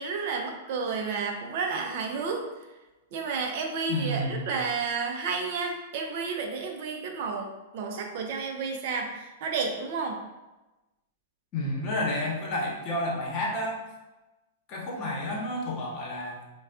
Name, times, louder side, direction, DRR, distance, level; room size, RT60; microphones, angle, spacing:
voice 1, 0.0-2.5 3.1-10.2, right 5 dB, 55° right, 2 dB, 0.5 m, -31 dB
voice 2, 3.9-4.5 11.5-13.8 14.7-16.4, left 1 dB, 40° left, -3 dB, 0.9 m, -30 dB
4.0 x 2.2 x 2.4 m, 1.1 s
figure-of-eight pair, 100°, 0 cm